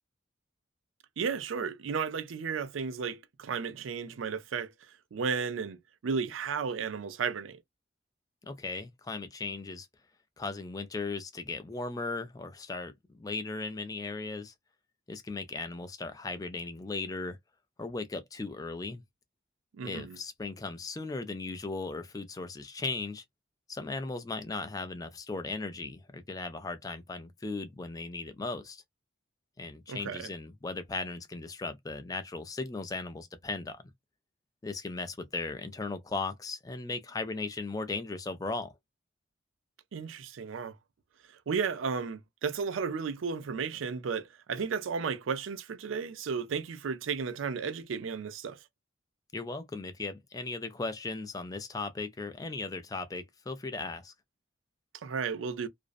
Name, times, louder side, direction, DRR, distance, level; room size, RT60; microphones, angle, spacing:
voice 1, 1.2-7.6 19.8-20.2 29.9-30.3 39.9-40.8 41.5-48.6 55.0-55.7, right 5 dB, 90° right, 0.4 m, -34 dB
voice 2, 8.4-9.9 10.4-14.5 15.1-17.4 17.8-19.0 19.8-23.2 23.7-28.8 29.6-33.8 34.6-38.7 49.3-54.1, left 3 dB, 20° left, 0.4 m, -37 dB
2.5 x 2.0 x 2.4 m
head